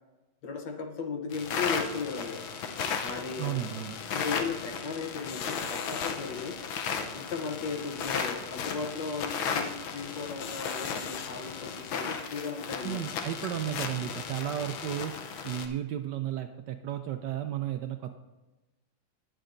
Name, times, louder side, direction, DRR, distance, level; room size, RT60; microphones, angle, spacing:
voice 1, 0.4-2.5 3.0-3.6 4.1-6.6 7.1-13.0, left 5 dB, 65° left, 4 dB, 1.5 m, -36 dB
sound 1, 1.3-15.7, left 6 dB, 85° left, 1.6 m, -35 dB
voice 2, 3.4-4.0 12.8-15.2 15.4-18.1, right 11 dB, 75° right, 7 dB, 1.0 m, -33 dB
19.0 x 7.7 x 2.6 m, 1.1 s
omnidirectional pair, 2.2 m